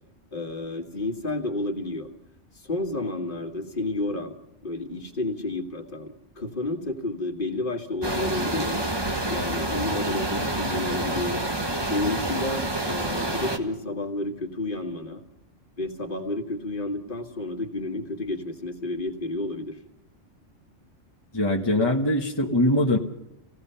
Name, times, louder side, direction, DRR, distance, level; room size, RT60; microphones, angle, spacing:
voice 1, 0.3-2.1 2.5-4.3 4.6-8.8 9.3-11.4 11.9-15.2 15.8-19.8, left 2 dB, 45° left, 3 dB, 2.0 m, -31 dB
sound 1, 8.0-13.6, right 1 dB, 20° right, 1.5 m, -28 dB
voice 2, 21.3-23.0, left 1 dB, 20° left, 0 dB, 1.4 m, -22 dB
28.0 x 17.5 x 5.7 m, 0.86 s
omnidirectional pair, 1.3 m